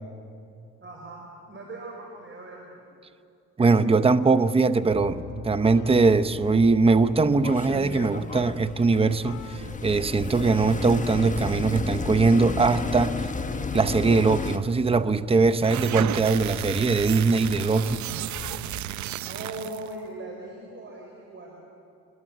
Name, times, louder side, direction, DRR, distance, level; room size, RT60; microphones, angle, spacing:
voice 1, 0.8-2.9 19.2-21.6, right 2 dB, 40° right, 0 dB, 4.8 m, -40 dB
voice 2, 3.6-13.3 13.7-18.1, right 4 dB, 20° right, 13 dB, 0.8 m, -21 dB
sound 1, 4.9-18.8, left 10 dB, 65° left, 1.6 m, -43 dB
sound 2, 7.4-14.6, left 4 dB, 25° left, 1.1 m, -33 dB
sound 3, 15.5-19.9, right 13 dB, 70° right, 0.6 m, -33 dB
26.5 x 22.0 x 7.5 m, 2.5 s
cardioid pair, 90°, 30 cm